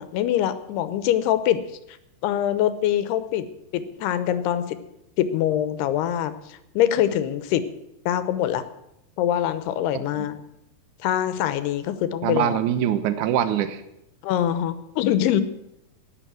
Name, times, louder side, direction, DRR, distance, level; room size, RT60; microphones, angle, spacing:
voice 1, 0.0-1.6 2.2-3.5 3.7-4.8 5.2-7.6 8.1-8.6 9.2-10.4 11.0-12.6 14.2-15.4, left 11 dB, 85° left, 13 dB, 2.9 m, -24 dB
voice 2, 12.2-13.8, right 10 dB, 70° right, 12 dB, 2.0 m, -23 dB
16.0 x 10.5 x 6.2 m, 0.84 s
omnidirectional pair, 4.6 m